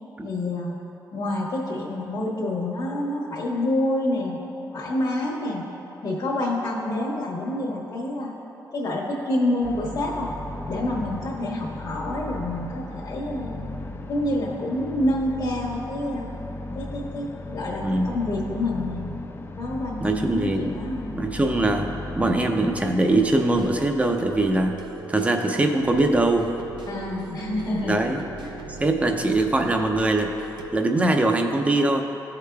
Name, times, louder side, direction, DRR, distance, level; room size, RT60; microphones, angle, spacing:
voice 1, 0.2-0.8 1.1-4.4 4.7-5.6 6.0-8.3 8.7-10.3 10.7-13.6 14.1-16.3 16.7-19.1 19.6-21.1 26.9-28.0 28.4-28.6, left 1 dB, 55° left, -5 dB, 1.1 m, -27 dB
sound 1, 9.6-22.9, left 2 dB, 30° left, 0.4 m, -36 dB
voice 2, 20.0-20.7 21.1-21.9 22.2-24.7 25.1-26.5 27.8-28.2 28.8-30.3 30.7-32.0, right 2 dB, 15° right, 4 dB, 0.6 m, -22 dB
sound 2, 23.1-30.7, right 3 dB, 75° right, 0.6 m, -39 dB
14.0 x 4.9 x 2.3 m, 3.0 s
cardioid pair, 80°, 8 cm